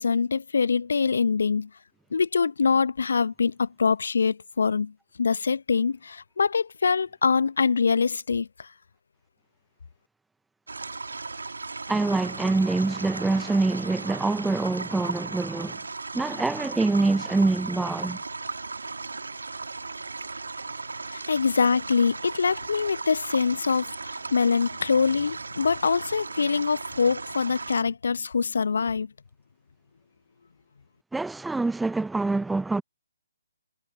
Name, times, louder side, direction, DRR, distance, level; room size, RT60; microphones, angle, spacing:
voice 1, 0.0-1.7 2.1-4.9 5.2-8.7 21.1-29.1, left 5 dB, 60° left, 1.0 m, -24 dB
sound 1, 10.7-27.8, right 3 dB, 70° right, 2.0 m, -36 dB
voice 2, 11.9-15.8 16.1-18.2 31.1-32.8, right 3 dB, 5° right, 0.9 m, -25 dB
figure-of-eight pair, 140°, 0 cm